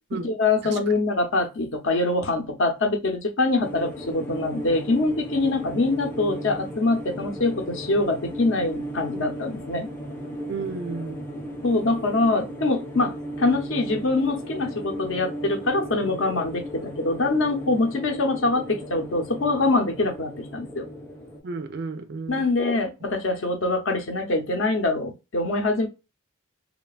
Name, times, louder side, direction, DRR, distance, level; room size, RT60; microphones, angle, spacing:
voice 1, 0.2-9.9 11.6-20.9 22.3-25.9, left 2 dB, 60° left, 0.6 m, -24 dB
sound 1, 3.6-21.4, equal, 10° left, 0.5 m, -36 dB
voice 2, 10.5-11.2 21.4-22.4, right 4 dB, 50° right, 0.3 m, -32 dB
3.1 x 2.2 x 2.3 m
head